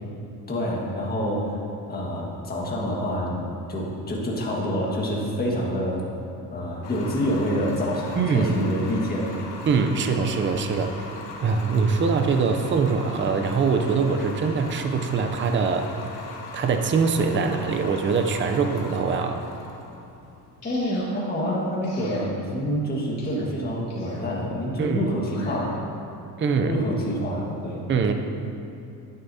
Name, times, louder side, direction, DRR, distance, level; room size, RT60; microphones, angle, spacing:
voice 1, 0.5-3.4 3.7-6.0 6.5-9.3 20.6-25.8 26.6-27.8, equal, 25° left, -3 dB, 1.7 m, -27 dB
sound 1, 6.8-21.8, left 3 dB, 80° left, 1.2 m, -40 dB
voice 2, 8.2-8.5 9.7-11.1 11.4-15.9 16.5-19.4 24.8-25.0 26.4-26.8 27.9-28.1, right 5 dB, 30° right, 5 dB, 0.6 m, -23 dB
sound 2, 20.6-21.1 21.8-22.3 23.2-23.4 23.9-24.3 25.2-25.6, left 3 dB, 45° left, 2.2 m, -45 dB
10.5 x 9.1 x 2.8 m, 2.7 s
cardioid pair, 125°, 37 cm